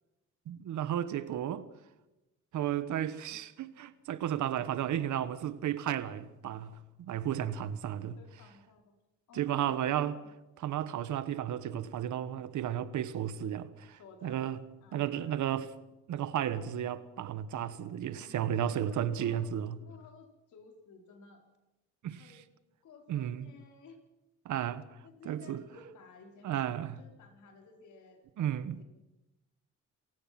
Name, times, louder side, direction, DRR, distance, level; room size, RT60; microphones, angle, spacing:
voice 1, 0.5-1.7 2.5-8.2 9.3-10.2 10.6-14.6 14.9-15.7 16.1-19.8 22.0-22.2 23.1-23.5 24.4-24.8 25.2-25.6 26.4-27.0 28.4-28.8, right 10 dB, 75° right, 1.4 m, -33 dB
voice 2, 8.2-8.9 9.3-10.3 13.9-14.5 14.8-15.5 18.1-19.5 19.8-21.4 22.1-22.5 22.8-24.0 25.0-26.7 27.0-28.8, left 5 dB, 75° left, 4.7 m, -55 dB
27.5 x 16.0 x 6.0 m
cardioid pair, 90°, 30 cm